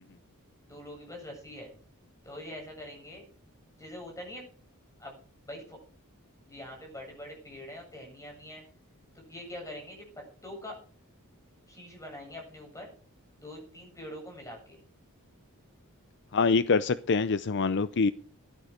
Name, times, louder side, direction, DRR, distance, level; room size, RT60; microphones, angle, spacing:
voice 1, 0.7-1.7 2.2-3.2 3.7-4.4 5.0-5.2 5.4-5.8 6.4-8.6 9.1-10.8 11.7-12.9 13.4-14.8, left 1 dB, 15° left, 7.8 m, -44 dB
voice 2, 16.3-18.1, left 4 dB, 55° left, 0.5 m, -25 dB
15.5 x 12.0 x 5.1 m
head